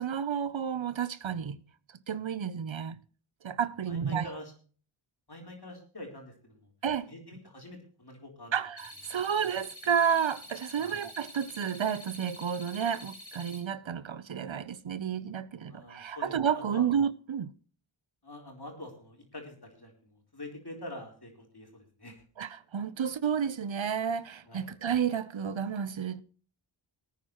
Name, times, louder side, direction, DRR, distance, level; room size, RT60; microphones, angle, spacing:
voice 1, 0.0-1.6 2.1-3.0 3.4-4.4 6.8-7.1 8.5-17.5 22.4-26.2, right 7 dB, 70° right, 0.8 m, -31 dB
voice 2, 3.9-4.5 5.3-6.7 7.1-8.5 10.8-11.0 15.7-16.9 18.2-22.2 24.4-24.7, left 1 dB, 50° left, 4.1 m, -46 dB
sound 1, 8.8-13.6, left 1 dB, 70° left, 4.4 m, -47 dB
21.0 x 9.3 x 3.0 m
wide cardioid pair, 40°, 48 cm